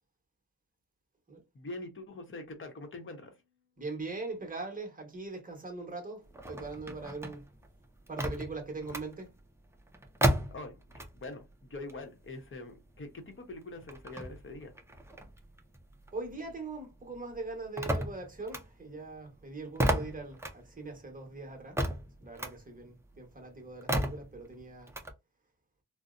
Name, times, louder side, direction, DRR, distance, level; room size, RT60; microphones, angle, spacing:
voice 1, 1.5-3.3 10.5-10.8 11.1-14.7, left 2 dB, 35° left, 0.8 m, -44 dB
voice 2, 3.8-7.5 8.1-9.4 16.1-21.8 22.2-24.9, right 3 dB, 25° right, 1.0 m, -41 dB
sound 1, 6.3-11.4 11.7-16.6 16.9-25.1, right 1 dB, 10° right, 0.4 m, -35 dB
4.0 x 2.0 x 2.4 m
wide cardioid pair, 170°, 36 cm